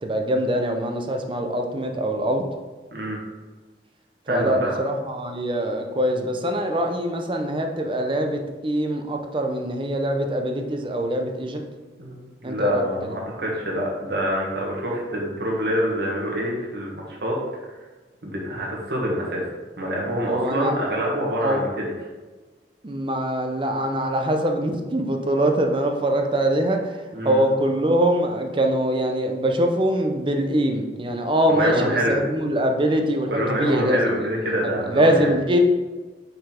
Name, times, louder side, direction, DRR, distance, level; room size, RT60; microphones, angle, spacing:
voice 1, 0.0-2.4 4.3-11.6 12.4-12.8 20.3-20.7 21.4-21.6 22.8-27.0 27.2-35.6, right 1 dB, 30° right, 4 dB, 0.6 m, -23 dB
voice 2, 4.3-4.7 12.0-17.4 18.2-19.4 19.8-21.9 27.1-27.4 31.5-32.2 33.3-35.3, equal, 65° right, -3 dB, 1.4 m, -26 dB
5.4 x 4.0 x 4.4 m, 1.3 s
head